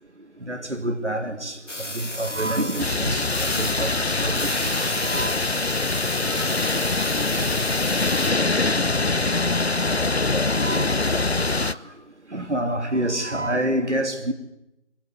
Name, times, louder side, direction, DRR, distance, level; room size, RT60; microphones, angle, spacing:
voice 1, 0.5-1.6 1.9-5.4 6.2-6.5 8.2-8.3 10.5-11.0 11.5-11.8 12.3-14.3, right 1 dB, 70° right, 2.9 m, -28 dB
sound 1, 1.7-8.3, left 2 dB, 80° left, 2.4 m, -33 dB
sound 2, 2.8-11.7, left 3 dB, 60° left, 1.0 m, -23 dB
voice 2, 6.1-6.2, left 2 dB, 10° left, 6.7 m, -45 dB
26.0 x 22.5 x 9.8 m
figure-of-eight pair, 170°, 36 cm